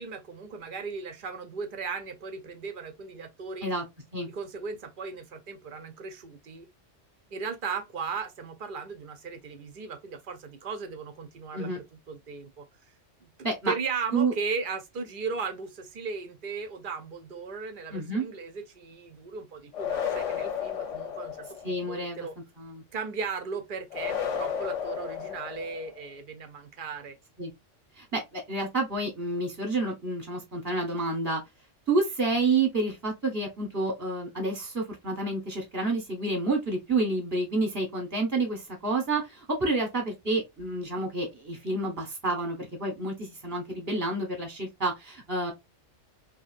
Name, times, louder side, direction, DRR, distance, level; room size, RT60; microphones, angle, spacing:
voice 1, 0.0-3.7 4.3-6.7 7.3-12.7 13.2-13.3 13.7-22.4 22.9-27.2, right 5 dB, 60° right, 0.6 m, -37 dB
voice 2, 17.9-18.2 21.6-22.3 22.6-22.8 27.4-27.5 28.0-31.4 31.9-45.5, right 2 dB, 15° right, 0.8 m, -29 dB
sound 1, 19.7-21.8 23.9-26.0, left 8 dB, 85° left, 1.1 m, -33 dB
2.8 x 2.7 x 2.4 m
omnidirectional pair, 1.2 m